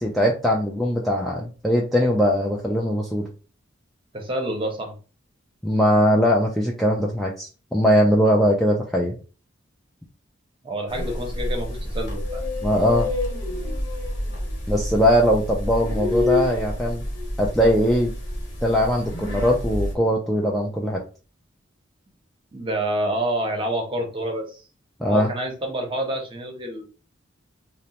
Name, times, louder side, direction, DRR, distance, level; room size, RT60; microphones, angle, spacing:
voice 1, 0.0-3.3 5.6-9.1 12.6-13.1 14.7-17.0 17.4-18.1 18.6-21.0 25.0-25.3, equal, ahead, -3 dB, 0.3 m, -20 dB
voice 2, 4.1-5.0 10.6-12.4 22.5-24.5 25.0-26.9, right 1 dB, 25° right, 2 dB, 0.8 m, -28 dB
sound 1, 10.9-19.9, left 2 dB, 60° left, 1.1 m, -28 dB
2.9 x 2.1 x 2.8 m, 0.35 s
head